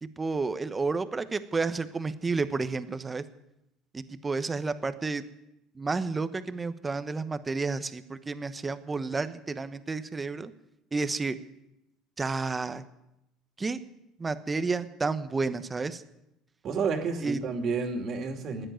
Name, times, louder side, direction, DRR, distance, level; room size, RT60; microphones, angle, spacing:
voice 1, 0.0-3.2 3.9-5.2 5.7-10.5 10.9-11.4 12.2-12.8 13.6-13.8 14.2-16.0 17.2-17.5, right 4 dB, 20° right, 12 dB, 1.1 m, -31 dB
voice 2, 16.6-18.7, right 4 dB, 50° right, 5 dB, 2.7 m, -30 dB
13.5 x 10.0 x 9.1 m, 0.87 s
supercardioid pair, 85°, 0 cm